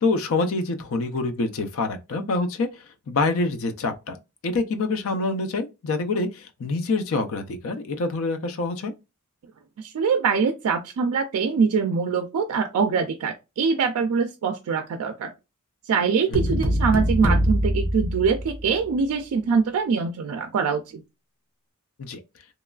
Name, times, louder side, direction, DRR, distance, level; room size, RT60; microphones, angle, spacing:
voice 1, 0.0-4.2 4.4-8.9 16.5-16.6 22.0-22.2, left 3 dB, 70° left, 0.4 m, -26 dB
voice 2, 9.8-15.3 15.9-21.0, right 5 dB, 85° right, 0.3 m, -23 dB
sound 1, 16.3-18.8, equal, 40° left, 0.8 m, -23 dB
3.0 x 2.3 x 2.2 m
head